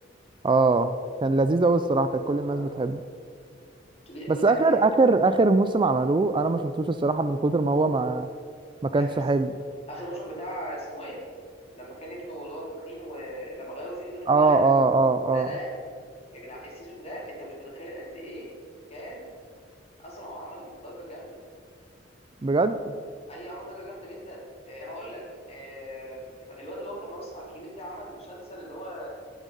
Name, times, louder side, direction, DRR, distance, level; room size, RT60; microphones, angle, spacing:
voice 1, 0.4-1.0 1.2-3.0 4.3-8.3 8.8-9.5 14.3-15.5 22.4-22.9, right 3 dB, 25° right, 10 dB, 0.4 m, -22 dB
voice 2, 4.1-4.9 8.9-9.2 9.9-11.3 11.7-14.7 15.3-15.8 16.3-18.6 18.9-19.3 20.0-21.4 23.3-29.1, equal, 35° left, -3 dB, 3.5 m, -39 dB
17.0 x 7.3 x 5.4 m, 2.2 s
head